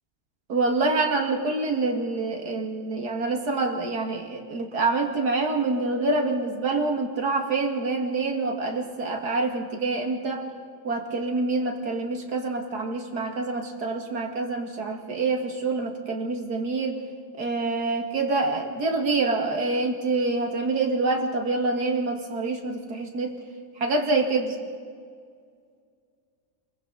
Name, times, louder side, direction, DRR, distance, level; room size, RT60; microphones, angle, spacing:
voice 1, 0.5-10.5 10.8-17.0 17.4-23.4 23.8-24.6, right 3 dB, 75° right, 2 dB, 2.7 m, -26 dB
28.5 x 22.0 x 4.1 m, 2.1 s
omnidirectional pair, 1.7 m